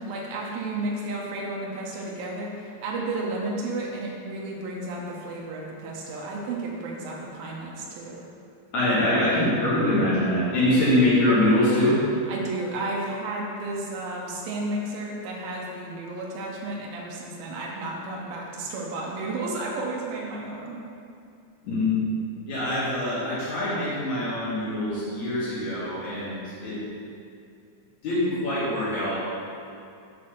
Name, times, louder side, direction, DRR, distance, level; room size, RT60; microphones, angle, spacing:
voice 1, 0.0-8.2 12.3-20.8, right 2 dB, 85° right, -3 dB, 2.1 m, -32 dB
voice 2, 8.7-12.0 21.6-21.9 22.5-26.8 28.0-29.3, left 1 dB, 65° left, -10 dB, 1.8 m, -24 dB
6.5 x 4.3 x 6.4 m, 2.5 s
omnidirectional pair, 5.2 m